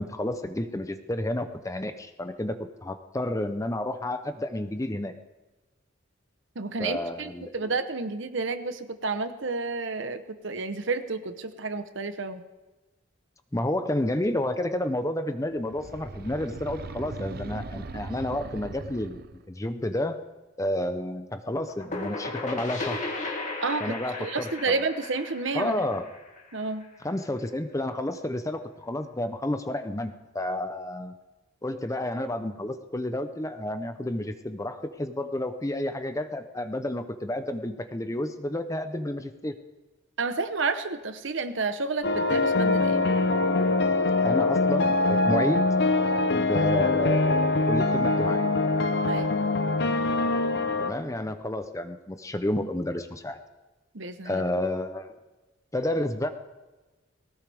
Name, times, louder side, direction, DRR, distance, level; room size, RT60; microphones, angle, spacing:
voice 1, 0.0-5.1 6.8-7.7 13.5-20.2 20.6-23.0 23.8-24.7 25.5-26.1 27.0-31.2 31.6-39.5 44.2-45.7 46.3-48.5 50.8-53.4 54.2-55.1 55.7-56.3, left 1 dB, 15° left, 9 dB, 0.7 m, -30 dB
voice 2, 6.5-12.4 23.6-25.7 26.5-26.9 40.2-43.0 49.1-49.3 53.9-54.4, right 3 dB, 65° right, 9 dB, 1.0 m, -30 dB
sound 1, 15.6-19.5, right 3 dB, 50° right, 0.6 m, -39 dB
sound 2, 21.5-27.0, left 2 dB, 40° left, 2.2 m, -35 dB
sound 3, 42.0-50.9, left 2 dB, 55° left, 0.8 m, -23 dB
19.0 x 18.0 x 3.5 m, 1.2 s
head